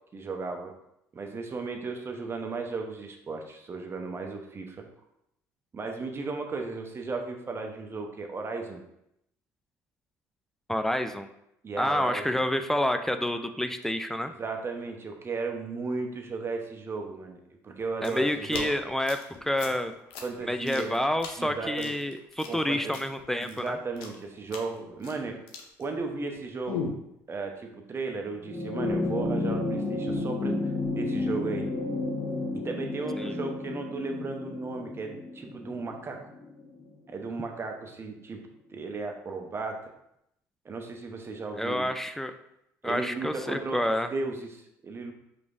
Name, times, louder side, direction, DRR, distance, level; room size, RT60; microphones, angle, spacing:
voice 1, 0.1-0.7 1.1-4.9 5.7-8.8 11.6-12.4 14.4-18.7 20.2-20.9 21.4-21.9 22.5-23.0 23.4-25.4 25.8-26.9 27.3-30.6 30.9-31.7 32.5-36.2 37.1-38.4 38.7-39.8 40.6-41.9 42.8-43.8 44.1-45.1, right 3 dB, 30° right, 3 dB, 0.8 m, -35 dB
voice 2, 10.7-11.3 11.8-14.3 18.0-19.9 20.4-23.8 33.2-33.4 41.6-42.3 42.8-44.1, left 1 dB, 5° left, 8 dB, 0.4 m, -28 dB
sound 1, 17.8-26.3 26.7-27.0, left 5 dB, 75° left, 0.7 m, -39 dB
sound 2, 28.4-37.1 38.3-38.4, left 2 dB, 25° left, 0.8 m, -32 dB
4.9 x 3.5 x 2.5 m, 0.80 s
hypercardioid pair, 65°, 8 cm